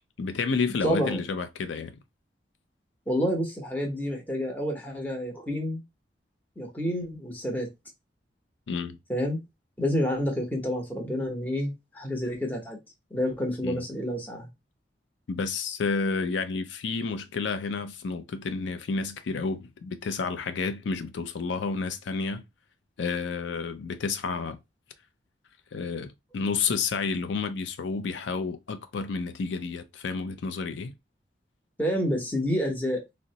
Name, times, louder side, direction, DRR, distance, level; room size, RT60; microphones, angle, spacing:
voice 1, 0.2-2.0 8.7-9.0 13.6-13.8 15.3-22.4 23.0-24.6 25.7-30.9, left 4 dB, 80° left, 0.4 m, -30 dB
voice 2, 0.8-1.2 3.1-5.8 6.6-7.7 9.1-9.4 9.8-12.8 13.1-14.5 31.8-33.0, equal, 10° left, 0.7 m, -29 dB
3.9 x 2.0 x 2.7 m
head